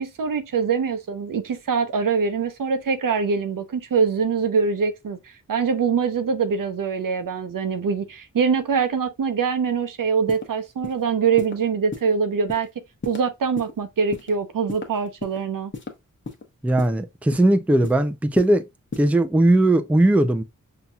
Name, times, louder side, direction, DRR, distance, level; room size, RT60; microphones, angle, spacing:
voice 1, 0.0-5.2 5.5-12.7 13.0-15.7, right 5 dB, 85° right, 0.7 m, -23 dB
sound 1, 10.3-10.4 10.8-11.0 11.4-11.5 11.9-12.1 12.5-12.7 13.0-13.2 13.6-13.7 14.1-14.3 14.7-15.4 15.7-15.9 16.3-16.4 16.8-16.9 17.3-17.5 17.8-18.0 18.4-18.5 18.9-19.1, left 4 dB, 35° left, 0.9 m, -33 dB
voice 2, 16.6-18.6 19.0-20.4, right 1 dB, 5° right, 0.3 m, -18 dB
5.5 x 2.8 x 2.2 m
wide cardioid pair, 95°, 32 cm